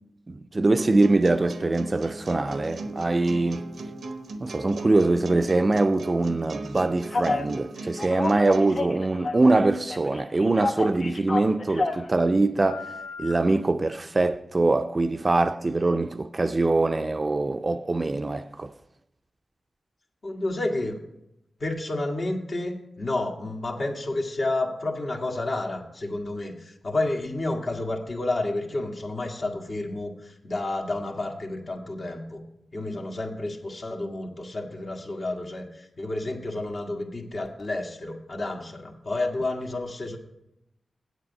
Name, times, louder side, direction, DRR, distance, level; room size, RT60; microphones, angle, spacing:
voice 1, 0.3-3.7 4.4-12.9 13.2-18.7, right 2 dB, 40° right, 0.5 m, -23 dB
sound 1, 0.8-8.8, right 2 dB, 85° right, 0.8 m, -38 dB
Telephone, 7.1-7.5 8.0-9.6 9.9-12.1 12.6-13.3, left 3 dB, 75° left, 1.2 m, -30 dB
voice 2, 20.2-21.0 21.6-32.4 32.7-40.2, left 2 dB, 60° left, 1.6 m, -30 dB
8.1 x 8.0 x 5.4 m
cardioid pair, 50°, 0 cm